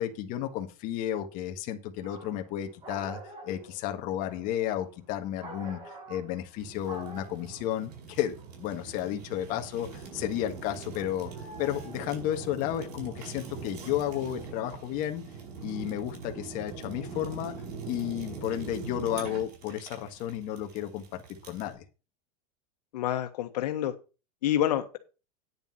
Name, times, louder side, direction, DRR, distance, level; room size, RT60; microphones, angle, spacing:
voice 1, 0.0-11.3 11.6-15.2 15.6-17.5 17.9-21.8, left 11 dB, 45° left, 1.6 m, -33 dB
sound 1, 2.0-2.5 2.8-6.6 6.8-7.7 8.1-10.1 10.5-12.6 13.5-15.0, right 2 dB, 25° right, 5.2 m, -47 dB
Fire, 6.6-21.7, right 5 dB, 85° right, 5.6 m, -43 dB
voice 2, 22.9-23.9 24.4-25.0, left 11 dB, 90° left, 1.5 m, -28 dB
9.7 x 6.9 x 5.7 m
supercardioid pair, 160°, 20 cm